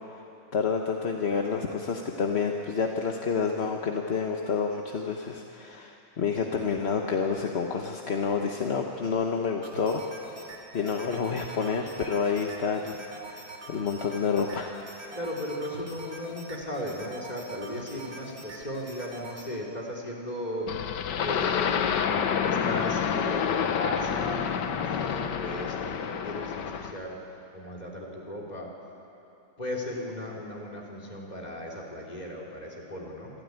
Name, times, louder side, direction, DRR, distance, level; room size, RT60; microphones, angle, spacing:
voice 1, 0.5-10.0 10.7-13.0 13.3-14.8, left 5 dB, 40° left, 2 dB, 1.1 m, -29 dB
sound 1, 9.6-19.5, right 2 dB, 70° right, 3.4 m, -44 dB
voice 2, 15.2-20.7 21.2-22.0 22.4-24.5 24.8-27.2 27.5-28.7 29.6-33.3, left 1 dB, 20° left, -1 dB, 3.6 m, -36 dB
sound 2, 20.7-27.0, left 7 dB, 65° left, 1.6 m, -28 dB
26.5 x 14.0 x 9.6 m, 2.9 s
omnidirectional pair, 2.1 m